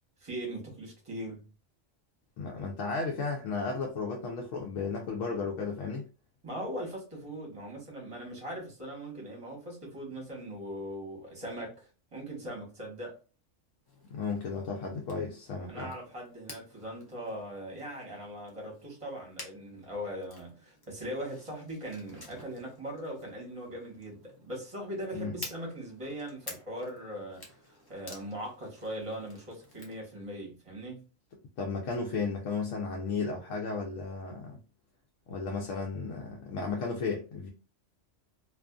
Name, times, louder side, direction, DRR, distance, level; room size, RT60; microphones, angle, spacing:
voice 1, 0.2-1.5 6.4-13.2 15.7-31.1, equal, 25° right, 1.1 m, -40 dB
voice 2, 2.4-6.0 14.1-15.9 25.1-25.3 31.6-34.6 35.3-37.5, left 4 dB, 85° left, 1.0 m, -34 dB
sound 1, 13.8-30.0, left 2 dB, 25° left, 0.5 m, -51 dB
2.5 x 2.4 x 2.2 m
omnidirectional pair, 1.3 m